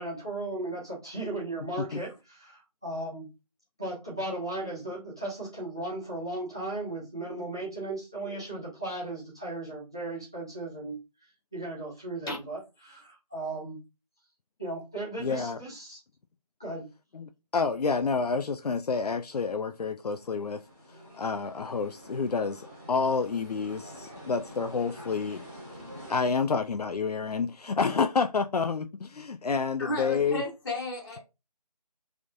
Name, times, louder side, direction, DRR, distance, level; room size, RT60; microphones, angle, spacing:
voice 1, 0.0-3.3 3.8-10.9 11.5-13.8 14.6-16.0 16.6-16.8, right 2 dB, 5° right, 0.5 m, -36 dB
voice 2, 15.2-15.6 17.1-20.6 20.9-25.4 26.1-30.4, left 5 dB, 80° left, 0.4 m, -29 dB
sound 1, 20.1-26.2, equal, 10° left, 1.2 m, -47 dB
voice 3, 29.8-31.2, left 1 dB, 35° left, 1.6 m, -33 dB
3.6 x 3.4 x 2.6 m
figure-of-eight pair, 170°, 20 cm